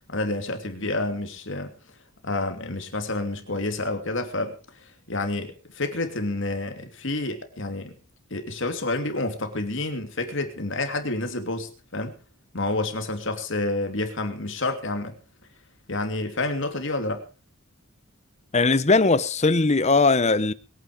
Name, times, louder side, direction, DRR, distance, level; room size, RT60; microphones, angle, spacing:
voice 1, 0.1-1.7 2.2-4.5 5.1-7.9 8.3-12.1 12.5-15.2 15.9-17.2, left 2 dB, 65° left, 2.8 m, -29 dB
voice 2, 18.5-20.5, left 3 dB, 35° left, 0.9 m, -19 dB
21.5 x 9.4 x 5.1 m
head